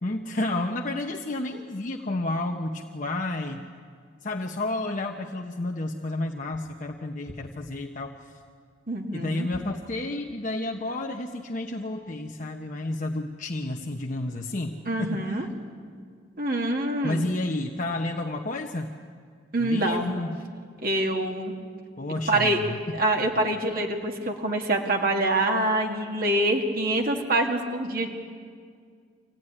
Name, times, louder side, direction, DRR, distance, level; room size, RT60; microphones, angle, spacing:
voice 1, 0.0-3.6 4.2-8.2 9.1-15.5 17.0-18.9 19.6-20.4 22.0-23.0, left 2 dB, 40° left, 2 dB, 1.0 m, -31 dB
voice 2, 8.9-9.5 14.9-15.5 16.4-17.2 19.5-20.1 20.8-21.5 22.3-22.6 22.9-28.1, right 1 dB, 50° right, 2 dB, 2.0 m, -25 dB
25.0 x 16.0 x 10.0 m, 2.1 s
head